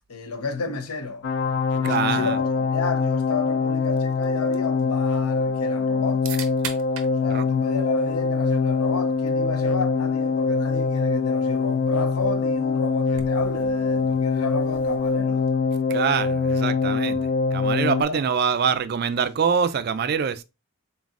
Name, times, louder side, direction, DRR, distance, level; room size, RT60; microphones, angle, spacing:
voice 1, 0.1-1.3 1.7-6.2 7.2-15.4 18.1-18.2, left 4 dB, 90° left, 0.8 m, -32 dB
sound 1, 1.2-18.0, left 4 dB, 55° left, 0.3 m, -23 dB
voice 2, 1.8-2.4 7.3-7.4 15.9-20.4, right 6 dB, 45° right, 0.3 m, -24 dB
sound 2, 3.8-15.8, right 7 dB, 80° right, 0.7 m, -44 dB
4.0 x 3.9 x 2.4 m
head